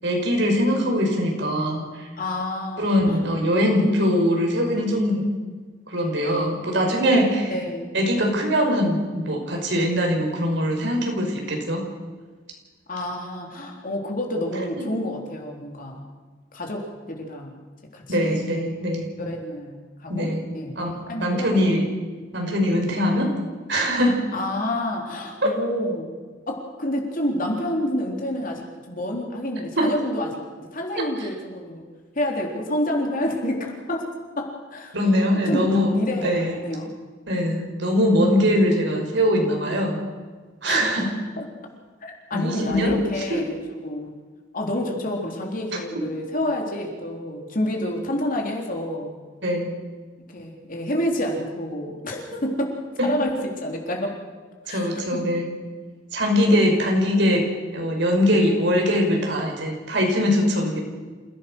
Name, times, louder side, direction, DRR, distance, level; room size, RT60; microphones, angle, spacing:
voice 1, 0.0-2.0 2.8-5.3 5.9-7.6 7.9-11.9 18.1-19.1 20.1-20.4 20.7-21.9 22.3-23.4 23.7-24.3 25.4-25.5 29.8-29.9 31.2-31.3 34.9-35.9 36.2-36.6 37.3-40.0 40.6-41.1 42.3-43.0 43.3-43.4 49.4-49.7 53.0-53.1 54.7-55.5 56.1-57.5 57.7-60.8, equal, 65° right, 2 dB, 5.2 m, -22 dB
voice 2, 2.2-3.2 7.5-7.9 12.9-16.0 16.5-17.6 17.9-18.4 19.2-20.8 21.1-21.8 24.3-26.1 26.5-30.4 30.7-31.9 32.2-36.9 40.7-41.1 41.4-41.5 42.0-43.6 43.8-44.2 44.5-49.2 50.3-54.1 54.7-55.4 56.4-56.7, left 1 dB, 45° left, 1 dB, 3.9 m, -29 dB
28.0 x 16.5 x 6.4 m, 1.4 s
head